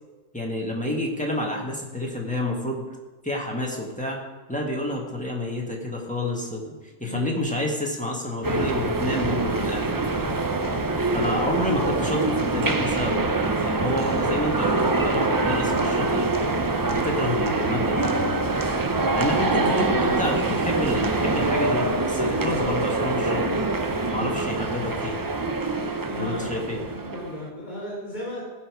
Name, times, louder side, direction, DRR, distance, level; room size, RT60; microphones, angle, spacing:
voice 1, 0.3-2.9 3.2-4.2 4.5-10.4 11.1-13.3 13.6-16.3 16.9-18.2 19.1-23.4 24.1-25.2 26.2-26.8, left 1 dB, 5° left, -1 dB, 1.6 m, -29 dB
voice 2, 7.0-7.6 11.3-11.6 19.5-19.7 24.1-24.4 26.1-28.4, equal, 35° left, -6 dB, 4.1 m, -35 dB
sound 1, 8.4-27.5, right 2 dB, 35° right, 0.3 m, -24 dB
16.0 x 5.7 x 4.8 m, 1.2 s
omnidirectional pair, 1.4 m